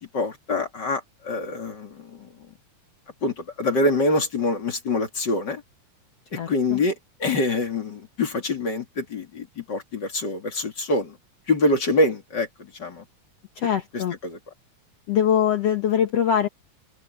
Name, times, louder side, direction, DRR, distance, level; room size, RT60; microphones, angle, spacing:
voice 1, 0.1-2.3 3.2-5.6 6.5-6.9 7.2-11.2 11.5-13.0 13.9-14.4, left 2 dB, 35° left, 3.0 m, -25 dB
voice 2, 6.4-6.8 13.6-14.2 15.1-16.5, left 9 dB, 60° left, 2.2 m, -22 dB
omnidirectional pair, 3.5 m